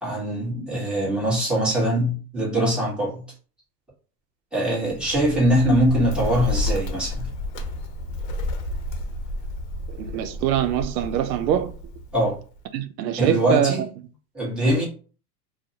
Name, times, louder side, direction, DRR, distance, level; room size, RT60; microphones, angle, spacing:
voice 1, 0.0-3.2 4.5-7.3 12.1-12.4 13.2-13.9 14.3-14.8, right 1 dB, ahead, 1.1 m, -22 dB
Bird, 4.8-12.6, left 1 dB, 85° left, 0.8 m, -31 dB
voice 2, 9.9-11.7 12.7-13.9, right 9 dB, 90° right, 0.5 m, -24 dB
2.6 x 2.1 x 2.7 m
supercardioid pair, 130°, 49 cm